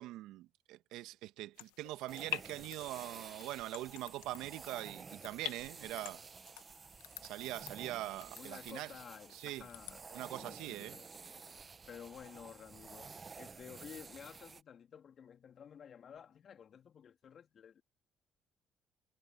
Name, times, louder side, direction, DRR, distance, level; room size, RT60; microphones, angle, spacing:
voice 1, 0.0-6.2 7.2-8.9 9.3-9.6 10.1-11.0, right 16 dB, 75° right, 1.7 m, -43 dB
sound 1, 1.6-10.0, left 22 dB, 80° left, 1.4 m, -49 dB
sound 2, 2.1-14.6, right 5 dB, 35° right, 1.2 m, -52 dB
voice 2, 8.3-10.1 10.3-11.1 11.9-17.8, left 8 dB, 55° left, 3.5 m, -53 dB
hypercardioid pair, 50°, 0 cm